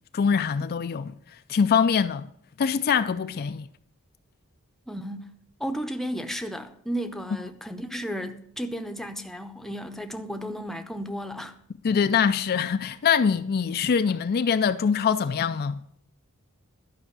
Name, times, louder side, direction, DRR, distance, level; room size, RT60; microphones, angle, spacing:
voice 1, 0.1-1.2 1.5-2.3 2.6-3.7 11.8-15.8, left 6 dB, 45° left, 0.4 m, -23 dB
voice 2, 4.9-11.6, equal, ahead, 0.7 m, -34 dB
12.0 x 5.6 x 8.0 m
head